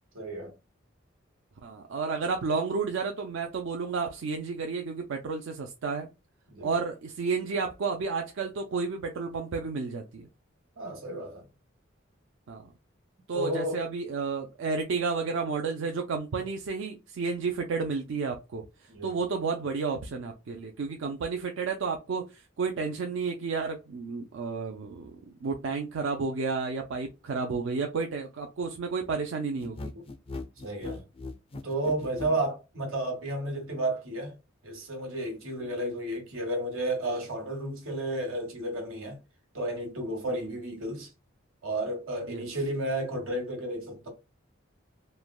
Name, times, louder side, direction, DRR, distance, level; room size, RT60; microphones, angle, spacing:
voice 1, 0.1-0.5 6.5-6.7 10.8-11.5 13.3-13.8 18.9-19.2 30.6-31.0 31.6-34.3 34.6-39.2 39.5-41.1 41.6-44.1, right 1 dB, 85° right, 1.2 m, -32 dB
voice 2, 1.6-6.1 6.6-10.3 12.5-12.7 13.3-25.1 25.4-29.9 35.6-35.7 42.3-42.4, right 4 dB, 65° right, 0.4 m, -31 dB
sound 1, 29.6-32.4, left 3 dB, 30° left, 0.4 m, -38 dB
3.2 x 2.2 x 2.3 m
head